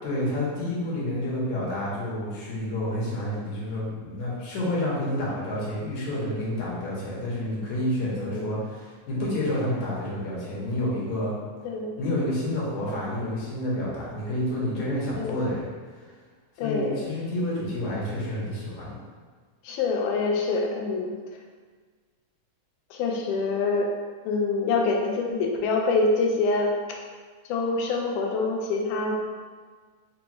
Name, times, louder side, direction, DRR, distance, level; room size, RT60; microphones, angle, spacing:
voice 1, 0.0-11.3 12.0-15.7 16.0-16.1 16.6-18.9, left 1 dB, 70° left, -6 dB, 2.2 m, -29 dB
voice 2, 8.2-8.5 11.7-12.0 15.2-15.5 16.6-17.0 19.6-21.2 22.9-23.9 24.3-26.7 27.5-29.1, left 3 dB, 90° left, 1 dB, 2.1 m, -25 dB
5.1 x 2.2 x 3.0 m, 1.5 s
omnidirectional pair, 3.5 m